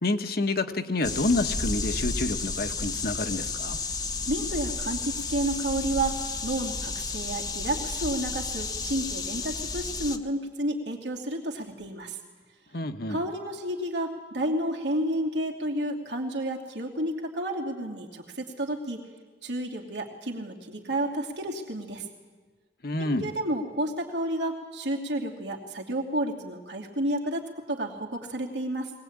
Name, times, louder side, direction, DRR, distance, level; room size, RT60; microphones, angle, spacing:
voice 1, 0.0-3.8 12.7-13.2 22.8-23.3, left 2 dB, 60° left, 7 dB, 1.3 m, -28 dB
sound 1, 1.0-10.2, left 3 dB, 25° left, 1.0 m, -32 dB
voice 2, 4.3-12.2 13.1-19.0 19.4-22.0 23.0-27.4 27.7-28.9, right 1 dB, 85° right, 1 dB, 2.8 m, -31 dB
22.0 x 19.0 x 8.8 m, 1.4 s
head